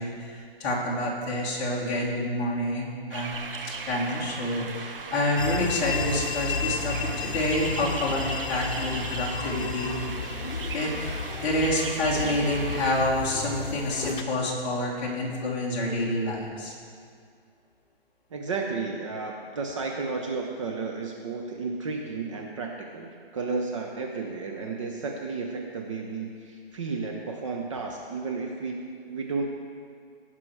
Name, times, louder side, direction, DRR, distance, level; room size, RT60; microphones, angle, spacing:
voice 1, 0.0-3.4 3.9-7.0 7.2-9.9 10.7-10.9 11.4-16.7, left 1 dB, 20° left, -5 dB, 1.8 m, -28 dB
sound 1, 3.1-13.0, right 4 dB, 60° right, 1.1 m, -38 dB
sound 2, 5.4-14.2, left 5 dB, 55° left, 1.1 m, -33 dB
voice 2, 18.3-29.4, right 4 dB, 30° right, 1 dB, 0.7 m, -33 dB
17.0 x 6.0 x 4.8 m, 2.2 s
hypercardioid pair, 160°, 31 cm